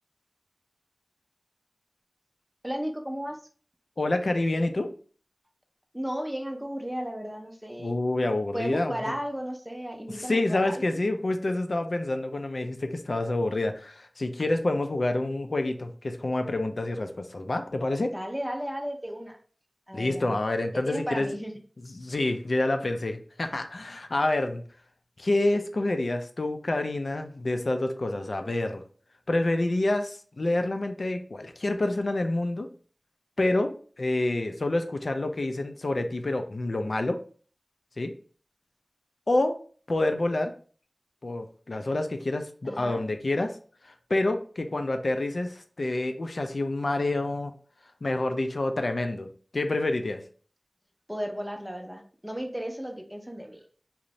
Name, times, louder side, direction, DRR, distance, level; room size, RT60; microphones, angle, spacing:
voice 1, 2.6-3.4 5.9-8.0 8.5-10.8 18.1-19.4 19.9-20.4 20.7-21.5 42.6-43.0 51.1-53.6, equal, 10° right, 3 dB, 0.5 m, -34 dB
voice 2, 4.0-4.9 7.8-9.0 10.1-18.1 19.9-21.3 21.9-24.6 25.2-28.8 29.3-32.7 33.4-37.2 38.0-38.1 39.3-39.6 39.9-40.5 41.2-43.6 43.8-47.5 48.0-49.3 49.5-50.2, left 2 dB, 80° left, 6 dB, 0.3 m, -28 dB
2.5 x 2.0 x 2.9 m, 0.43 s
wide cardioid pair, 55°, 0 cm